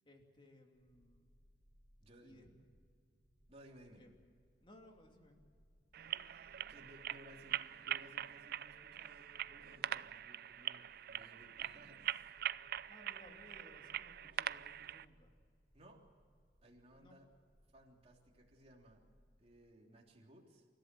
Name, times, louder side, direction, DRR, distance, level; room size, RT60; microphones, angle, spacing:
voice 1, 0.1-1.3 2.2-2.5 3.9-4.1 4.6-5.4 12.9-15.3 17.0-17.1, left 1 dB, 30° left, 3 dB, 2.8 m, -61 dB
sound 1, 0.7-19.6, equal, 75° left, 7.7 m, -70 dB
voice 2, 2.0-2.5 3.5-4.1 6.7-12.5 15.7-16.0 16.6-17.3 17.7-19.0 19.4-20.7, equal, 35° right, 0 dB, 3.3 m, -61 dB
sound 2, 5.9-15.1, right 11 dB, 60° right, 0.4 m, -43 dB
29.0 x 14.5 x 7.6 m, 2.2 s
head